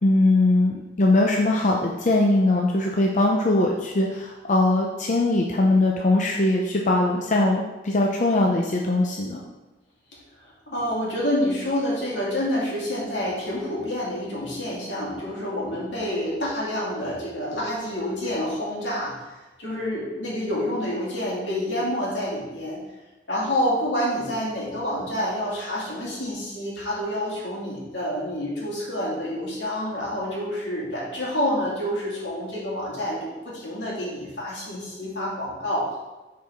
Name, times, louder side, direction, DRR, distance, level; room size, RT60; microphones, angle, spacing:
voice 1, 0.0-9.4, left 2 dB, 45° left, 0 dB, 0.6 m, -21 dB
voice 2, 10.7-19.1 19.6-22.8 23.3-35.9, left 1 dB, 80° left, -5 dB, 2.7 m, -28 dB
9.7 x 4.8 x 3.6 m, 1.1 s
head